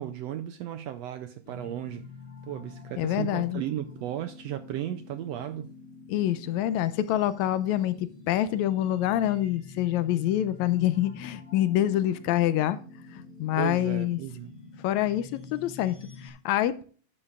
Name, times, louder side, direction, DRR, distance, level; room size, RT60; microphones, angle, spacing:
voice 1, 0.0-2.1 2.5-5.7 13.5-14.6, right 12 dB, 80° right, 1.5 m, -35 dB
sound 1, 1.5-16.3, left 4 dB, 35° left, 2.9 m, -47 dB
voice 2, 3.0-3.6 6.1-12.8 13.1-14.2 14.8-16.0 16.2-16.8, left 13 dB, 80° left, 1.8 m, -26 dB
12.0 x 11.0 x 2.5 m
omnidirectional pair, 3.4 m